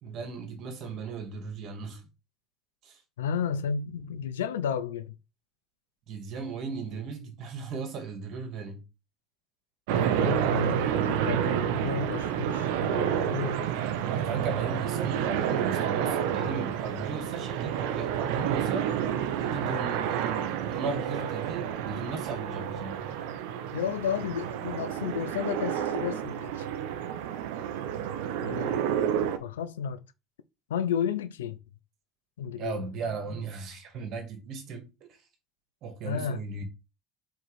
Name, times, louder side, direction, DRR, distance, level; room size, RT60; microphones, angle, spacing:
voice 1, 0.0-2.0 2.9-3.0 6.1-8.8 14.1-18.9 19.4-23.0 32.6-34.9 35.8-36.6, right 4 dB, 60° right, 2.1 m, -36 dB
voice 2, 3.2-5.2 9.9-13.7 23.7-26.7 28.4-28.8 29.4-30.0 30.7-31.6 32.4-32.9 36.0-36.4, left 7 dB, 90° left, 0.6 m, -32 dB
sound 1, 9.9-29.4, right 9 dB, 75° right, 0.8 m, -29 dB
4.6 x 4.6 x 4.8 m
hypercardioid pair, 75°, 0 cm